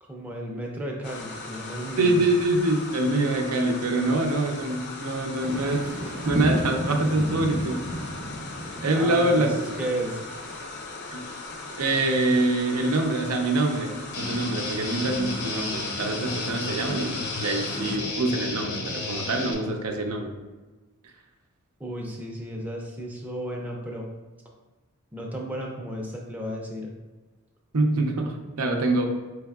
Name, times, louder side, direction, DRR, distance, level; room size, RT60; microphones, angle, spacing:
voice 1, 0.1-2.3 8.9-10.2 21.8-24.1 25.1-26.9, right 1 dB, 10° right, -1 dB, 0.4 m, -33 dB
sound 1, 1.0-18.0, left 3 dB, 50° left, 0.4 m, -39 dB
voice 2, 2.0-5.8 6.2-7.8 8.8-9.6 11.1-11.2 11.8-20.3 27.7-29.1, right 2 dB, 90° right, 2 dB, 0.6 m, -25 dB
sound 2, 5.4-10.6, equal, 45° right, 0.6 m, -32 dB
Guitar, 14.1-19.5, left 2 dB, 85° left, 0.8 m, -32 dB
4.6 x 3.4 x 2.3 m, 1.2 s
head